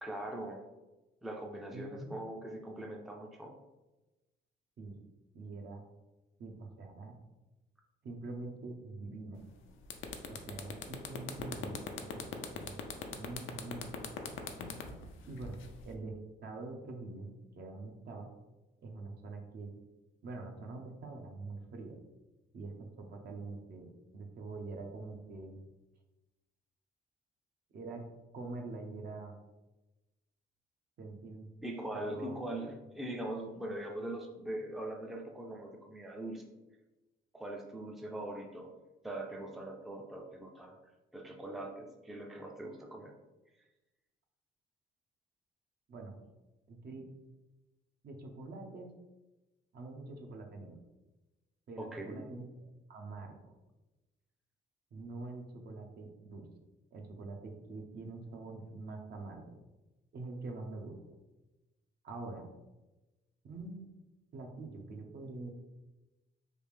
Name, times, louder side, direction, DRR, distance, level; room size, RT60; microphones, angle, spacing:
voice 1, 0.0-0.6 1.2-3.5 31.6-36.4 37.3-38.7 39.0-40.8 41.1-43.1 51.8-52.3, right 1 dB, ahead, 1 dB, 0.4 m, -41 dB
voice 2, 1.7-2.1 4.8-5.0 5.3-5.8 6.4-7.1 8.0-9.4 10.3-12.8 13.2-14.3 15.3-18.3 18.8-19.7 20.2-22.0 22.5-25.6 27.7-28.1 28.3-29.3 31.0-31.5 31.9-32.4 45.9-46.2 46.7-47.1 48.0-48.9 49.7-50.8 51.7-53.5 54.9-56.5 56.9-59.6 60.1-61.0 62.0-62.5 63.4-63.9 64.3-65.5, right 3 dB, 55° right, 2 dB, 0.6 m, -45 dB
sound 1, 9.4-9.5 9.8-15.9, left 6 dB, 85° left, 0.5 m, -41 dB
3.3 x 2.5 x 3.3 m, 1.1 s
cardioid pair, 90°, 20 cm